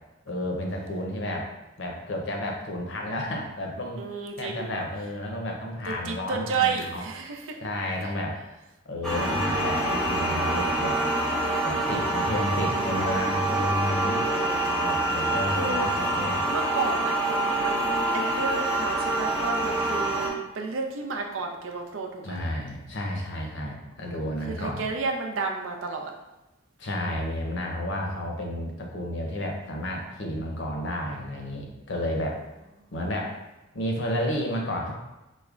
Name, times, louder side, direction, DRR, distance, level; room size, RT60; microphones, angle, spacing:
voice 1, 0.3-1.5 1.8-4.0 4.4-7.0 7.6-8.4 8.9-11.0 11.6-14.3 14.8-16.4 22.2-24.9 26.8-32.4 32.9-33.4 33.7-34.9, left 1 dB, 65° left, 0 dB, 0.7 m, -31 dB
voice 2, 4.0-4.7 5.9-7.6 8.0-8.1 12.7-13.1 14.2-14.9 15.2-17.8 18.1-22.5 24.0-26.1, right 4 dB, 85° right, 2 dB, 0.5 m, -32 dB
sound 1, 9.0-20.3, right 1 dB, 5° left, 0.5 m, -26 dB
4.8 x 2.1 x 2.4 m, 0.99 s
head